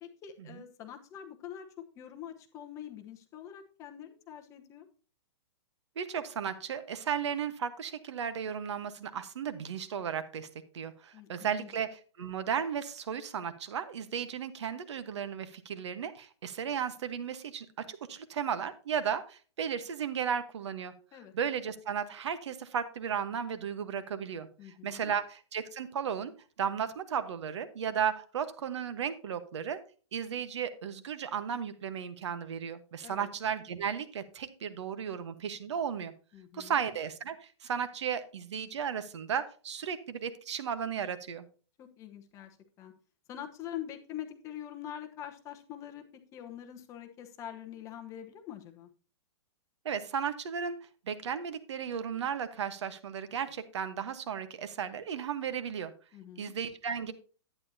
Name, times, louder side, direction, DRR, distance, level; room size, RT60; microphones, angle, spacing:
voice 1, 0.0-4.9 11.1-11.7 21.1-21.3 24.6-25.1 33.0-33.3 36.3-36.8 41.8-42.9 43.3-46.0 46.3-48.9 56.1-56.6, left 10 dB, 20° left, 5 dB, 1.0 m, -45 dB
voice 2, 6.0-10.5 10.7-20.9 21.3-24.5 24.8-26.3 26.6-29.8 30.1-36.1 36.5-41.4 49.8-50.8 51.1-55.9 56.4-57.1, right 7 dB, 75° right, 11 dB, 1.2 m, -35 dB
11.0 x 9.5 x 2.8 m, 0.38 s
hypercardioid pair, 160°, 15 cm